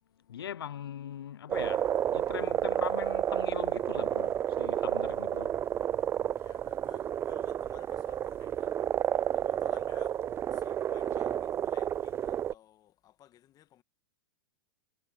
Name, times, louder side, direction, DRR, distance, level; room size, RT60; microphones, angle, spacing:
voice 1, 0.3-5.6, left 9 dB, 80° left, 0.9 m, -41 dB
sound 1, 1.5-12.5, right 10 dB, 20° right, 0.3 m, -31 dB
voice 2, 6.3-8.8 9.3-13.8, left 12 dB, 30° left, 1.7 m, -59 dB
hypercardioid pair, 115°, 12 cm